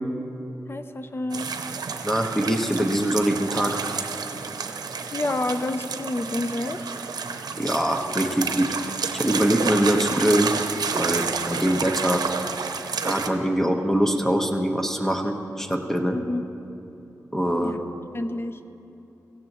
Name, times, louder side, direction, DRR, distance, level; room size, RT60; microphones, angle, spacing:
voice 1, 0.7-1.5 4.4-4.5 5.1-7.0 16.1-16.4 17.6-17.8 18.1-18.6, left 2 dB, 35° left, 10 dB, 0.7 m, -29 dB
sound 1, 1.3-13.3, right 5 dB, 80° right, 0.7 m, -30 dB
voice 2, 2.0-3.8 7.5-8.7 9.1-10.5 10.9-12.2 13.0-16.2 17.3-17.8, equal, 5° left, 4 dB, 1.3 m, -23 dB
17.0 x 15.5 x 3.1 m, 2.9 s
cardioid pair, 55°, 7 cm